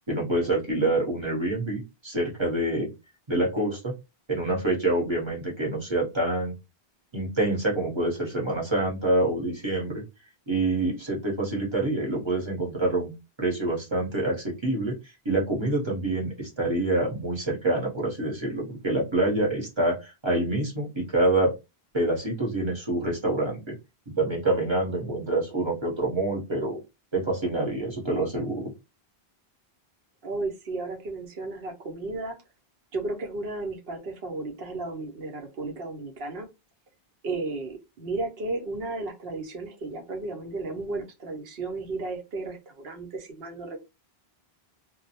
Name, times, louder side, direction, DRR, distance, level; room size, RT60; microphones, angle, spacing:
voice 1, 0.1-2.9 3.3-3.9 4.3-6.5 7.1-10.0 10.5-13.1 13.4-15.0 15.2-21.5 21.9-23.8 24.2-26.8 27.1-28.7, right 2 dB, 30° right, 0.9 m, -26 dB
voice 2, 30.2-32.4 32.9-36.5 37.2-43.8, right 3 dB, 75° right, 0.9 m, -34 dB
2.2 x 2.0 x 2.7 m
omnidirectional pair, 1.0 m